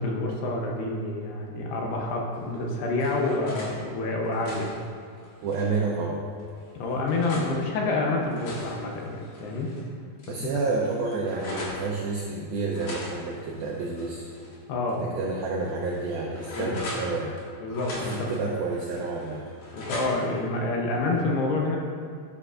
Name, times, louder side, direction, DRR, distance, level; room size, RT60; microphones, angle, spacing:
voice 1, 0.0-4.7 6.8-9.7 10.4-10.5 14.7-15.0 16.5-16.7 17.6-18.3 19.7-21.8, left 2 dB, 75° left, -1 dB, 2.8 m, -28 dB
sound 1, 2.5-3.7 4.2-5.8 6.4-7.5 8.1-9.8 10.2-10.3 10.6-11.8 12.7-14.6 14.9-15.0 15.6-17.4 17.7-18.4 18.9-20.4, left 1 dB, 55° left, 2.6 m, -40 dB
voice 2, 5.4-6.2 10.3-14.3 15.0-17.4 18.0-19.5, right 3 dB, 85° right, -3 dB, 2.1 m, -29 dB
11.0 x 10.0 x 2.5 m, 2.3 s
omnidirectional pair, 5.2 m